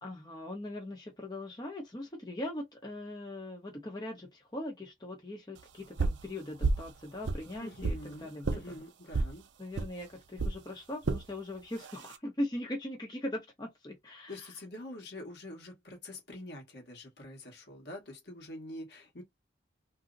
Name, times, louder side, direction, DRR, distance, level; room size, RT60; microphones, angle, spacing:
voice 1, 0.0-8.5 9.1-9.2 9.6-14.5, left 1 dB, 20° left, 0.8 m, -40 dB
sound 1, 6.0-6.3 6.6-6.9 7.2-8.0 8.4-8.6 9.1-9.3 9.8-9.9 10.4-10.6 11.0-11.2 11.8-12.2, right 3 dB, 80° right, 0.5 m, -30 dB
voice 2, 7.5-9.5 14.3-19.2, left 1 dB, 65° left, 1.3 m, -45 dB
2.6 x 2.1 x 3.8 m
head